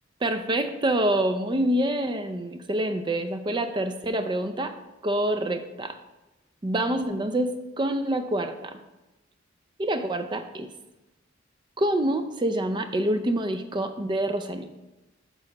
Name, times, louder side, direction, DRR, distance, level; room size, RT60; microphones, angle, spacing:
voice 1, 0.2-4.7 5.0-6.0 6.6-8.8 9.8-10.7 11.8-14.7, right 1 dB, 25° right, 8 dB, 0.4 m, -26 dB
6.3 x 3.8 x 6.3 m, 1.0 s
head